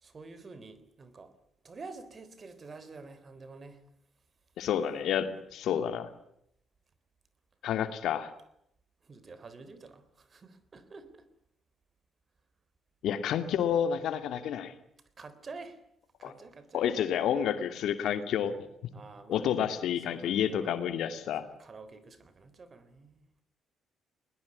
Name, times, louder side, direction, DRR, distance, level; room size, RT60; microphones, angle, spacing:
voice 1, 0.0-1.3 1.6-3.8 9.0-11.3 15.2-15.8 16.2-16.8 18.9-19.7 20.1-20.7 21.6-23.2, right 4 dB, 40° right, 14 dB, 3.6 m, -48 dB
voice 2, 4.6-6.1 7.6-8.3 13.0-14.7 16.2-16.3 16.7-18.6 19.3-21.5, left 9 dB, 80° left, 9 dB, 2.6 m, -29 dB
20.5 x 20.5 x 9.8 m, 0.76 s
cardioid pair, 90°, 0 cm